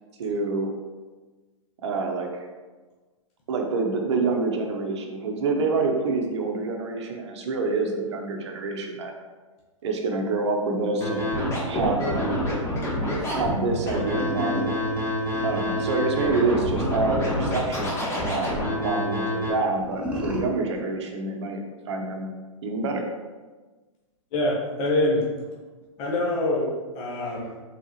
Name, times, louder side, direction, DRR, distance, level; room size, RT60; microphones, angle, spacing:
voice 1, 0.2-0.7 1.8-2.5 3.5-9.1 9.8-11.4 11.7-12.4 13.3-14.8 15.4-17.9 18.3-21.6 21.9-22.3 22.6-23.1, right 3 dB, 55° right, 3 dB, 0.9 m, -27 dB
Scratching (performance technique), 11.0-19.5, left 1 dB, 15° left, 1.2 m, -27 dB
sound 1, 14.1-17.9 19.8-20.4, equal, 5° right, 0.9 m, -34 dB
voice 2, 24.3-25.3 26.0-27.5, left 1 dB, 35° left, -4 dB, 1.1 m, -25 dB
4.5 x 3.9 x 2.9 m, 1.3 s
figure-of-eight pair, 115°, 17 cm